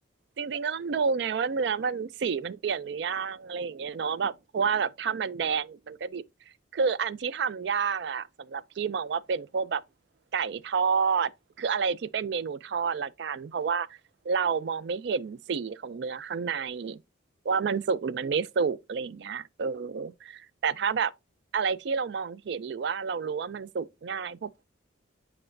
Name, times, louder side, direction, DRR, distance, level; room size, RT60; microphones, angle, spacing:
voice 1, 0.4-6.2 6.7-9.8 10.3-11.3 11.6-13.9 14.3-17.0 17.5-21.1 21.5-24.7, right 6 dB, 60° right, 0.3 m, -29 dB
7.7 x 4.9 x 2.5 m
head